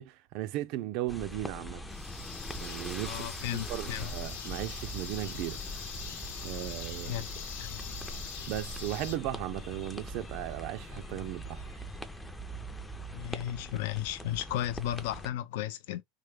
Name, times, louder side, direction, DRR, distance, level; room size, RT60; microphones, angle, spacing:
voice 1, 0.0-1.9 2.6-5.6 6.4-7.2 8.5-11.8, right 15 dB, 60° right, 0.3 m, -37 dB
sound 1, 1.1-15.3, equal, 10° left, 0.4 m, -42 dB
sound 2, 1.9-9.2, left 5 dB, 90° left, 0.8 m, -42 dB
voice 2, 3.0-4.1 7.1-7.3 7.6-7.8 13.1-16.0, left 12 dB, 75° left, 0.4 m, -34 dB
sound 3, 3.6-12.3, left 3 dB, 30° left, 0.9 m, -55 dB
3.3 x 2.1 x 3.1 m
supercardioid pair, 130°, 0 cm